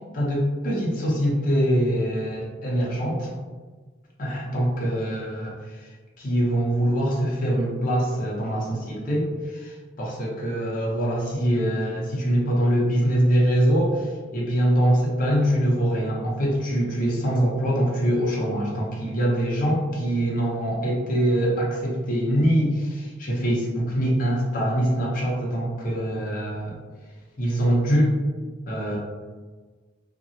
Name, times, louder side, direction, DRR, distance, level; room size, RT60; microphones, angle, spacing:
voice 1, 0.1-3.3 4.2-5.9 6.2-26.7 27.4-28.2 28.7-29.0, equal, 45° left, -4 dB, 0.7 m, -23 dB
2.8 x 2.2 x 2.6 m, 1.4 s
head